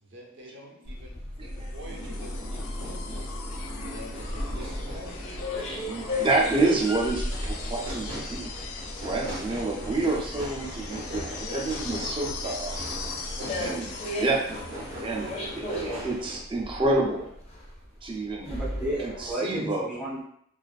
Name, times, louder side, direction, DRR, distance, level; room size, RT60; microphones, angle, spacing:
voice 1, 0.0-3.3 3.9-5.3, equal, 60° right, -2 dB, 0.7 m, -46 dB
sound 1, 0.9-19.3, left 1 dB, 30° left, 0.4 m, -36 dB
voice 2, 1.4-1.7 5.7-8.5 9.0-12.8 13.6-13.9 14.2-14.4 15.0-17.3 18.0-18.6 19.0-19.9, right 2 dB, 25° right, -1 dB, 0.4 m, -28 dB
sound 2, 1.6-15.6 17.0-17.1, left 5 dB, 90° left, 0.3 m, -41 dB
sound 3, 1.8-16.4, equal, 85° right, 0.9 m, -40 dB
voice 3, 18.4-20.2, right 1 dB, 5° right, -6 dB, 0.8 m, -32 dB
2.4 x 2.3 x 2.4 m, 0.70 s
head